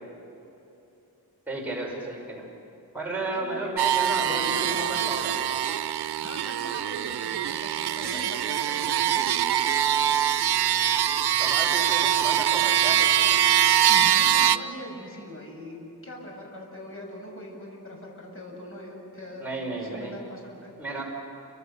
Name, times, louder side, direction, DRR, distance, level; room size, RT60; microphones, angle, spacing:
voice 1, 1.5-2.5 2.9-5.6 11.3-13.4 19.4-20.1 20.8-21.0, right 2 dB, 5° right, -3 dB, 5.3 m, -33 dB
voice 2, 3.3-5.4 6.2-9.3 13.9-20.7, left 1 dB, 35° left, 0 dB, 7.3 m, -41 dB
sound 1, 3.8-14.6, right 10 dB, 85° right, 0.8 m, -23 dB
29.0 x 26.0 x 6.9 m, 2.9 s
wide cardioid pair, 125°, 38 cm